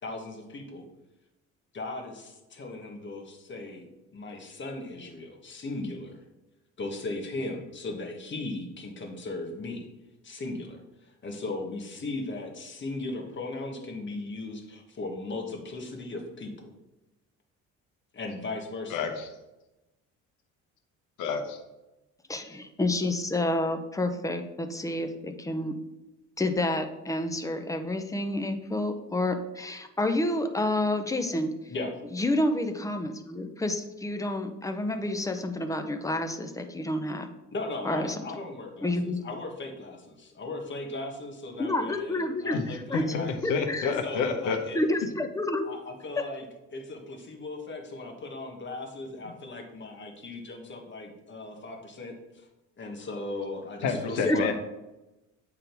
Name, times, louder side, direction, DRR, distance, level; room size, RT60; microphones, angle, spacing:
voice 1, 0.0-0.9 1.7-3.8 4.1-6.2 6.8-9.9 10.2-10.8 11.0-16.7 18.1-19.1 31.7-31.9 37.5-43.3 44.0-44.8 45.6-46.4 46.7-52.5 52.8-54.5, left 2 dB, 35° left, 3 dB, 1.5 m, -37 dB
voice 2, 18.9-19.2 21.2-21.6 42.5-42.6 42.9-44.6 53.8-54.5, left 5 dB, 85° left, 5 dB, 1.2 m, -29 dB
voice 3, 22.3-25.7 26.4-31.5 32.1-37.3 37.8-38.2 38.8-39.2 41.6-43.0 43.4-44.0 44.7-45.6 54.2-54.4, left 1 dB, 10° left, 7 dB, 0.7 m, -29 dB
8.5 x 3.8 x 4.6 m, 0.99 s
cardioid pair, 105°, 31 cm